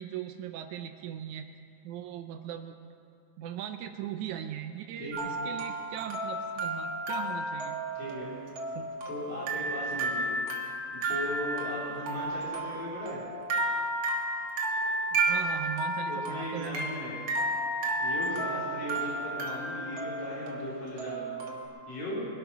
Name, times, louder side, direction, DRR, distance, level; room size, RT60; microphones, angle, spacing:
voice 1, 0.0-1.5 1.8-2.8 3.4-7.8 8.7-8.9 15.1-16.9, right 10 dB, 80° right, 7 dB, 1.8 m, -39 dB
voice 2, 5.0-5.3 7.9-8.3 9.1-10.4 10.9-13.2 16.1-17.2 18.0-21.3 21.9-22.3, left 1 dB, 60° left, -7 dB, 5.0 m, -37 dB
sound 1, 5.1-21.7, right 2 dB, 55° right, 2.4 m, -32 dB
23.0 x 8.6 x 6.0 m, 2.4 s
omnidirectional pair, 3.8 m